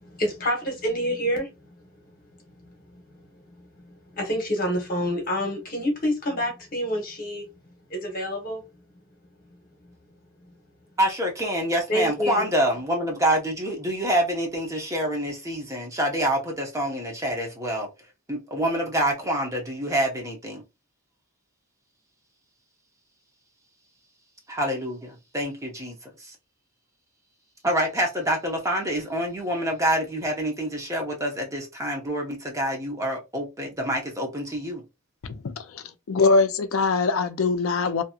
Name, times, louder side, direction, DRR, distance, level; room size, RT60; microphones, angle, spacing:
voice 1, 0.0-1.5 4.2-7.4 7.9-8.6 11.9-12.4, equal, 40° left, 1.1 m, -27 dB
voice 2, 11.0-17.9 18.3-20.6 24.5-26.3 27.6-34.8, right 1 dB, 15° right, 0.7 m, -27 dB
voice 3, 35.2-38.0, left 4 dB, 70° left, 0.4 m, -23 dB
2.9 x 2.7 x 2.3 m
head